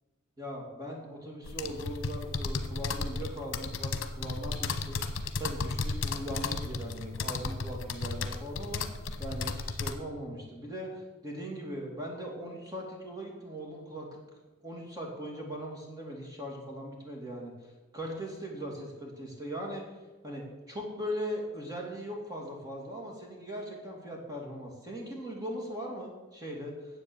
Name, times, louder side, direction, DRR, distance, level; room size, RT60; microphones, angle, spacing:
voice 1, 0.4-5.0 5.4-14.2 14.6-19.8 20.2-27.0, equal, 20° right, -1 dB, 2.6 m, -39 dB
sound 1, 1.4-9.9, left 4 dB, 75° left, 1.0 m, -34 dB
10.0 x 7.7 x 7.0 m, 1.2 s
head